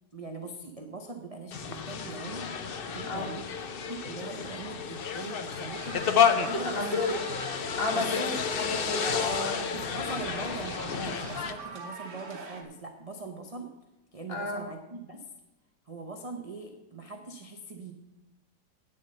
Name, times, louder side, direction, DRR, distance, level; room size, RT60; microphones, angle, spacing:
voice 1, 0.1-3.5 3.8-6.8 7.9-8.3 9.6-13.7 14.1-15.3 15.9-17.9, right 3 dB, 30° right, 3 dB, 0.6 m, -41 dB
sound 1, 1.5-11.5, left 7 dB, 55° left, 0.6 m, -31 dB
sound 2, 5.5-12.6, right 3 dB, 50° right, 1.8 m, -44 dB
voice 2, 6.5-7.2 7.8-9.6 14.3-14.7, left 3 dB, 35° left, 3 dB, 1.7 m, -32 dB
9.2 x 7.6 x 6.6 m, 0.97 s
omnidirectional pair, 1.8 m